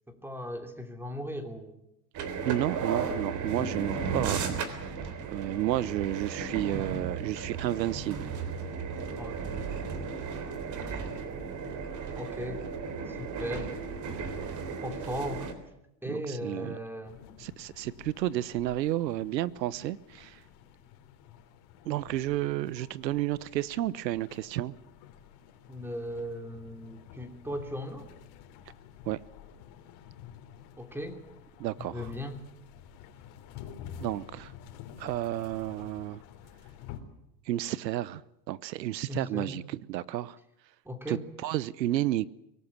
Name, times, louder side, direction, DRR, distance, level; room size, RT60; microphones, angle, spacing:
voice 1, 0.1-1.7 9.2-9.5 12.2-12.6 13.1-13.7 14.8-15.5 16.0-17.2 25.7-28.1 30.8-31.2 31.9-32.4 39.1-39.6 40.8-41.2, equal, 5° right, 6 dB, 3.0 m, -37 dB
sound 1, 2.1-15.5, right 5 dB, 35° right, 3.6 m, -35 dB
voice 2, 2.4-4.9 5.3-8.3 16.1-16.8 17.4-20.4 21.8-24.7 29.0-29.2 31.6-32.1 34.0-34.5 35.0-36.2 37.5-38.2 38.5-40.4 41.1-41.2 41.4-42.3, right 14 dB, 90° right, 20 dB, 1.1 m, -31 dB
sound 2, 17.0-37.0, left 9 dB, 50° left, 3.6 m, -50 dB
24.0 x 18.0 x 8.7 m, 0.85 s
supercardioid pair, 125°, 49 cm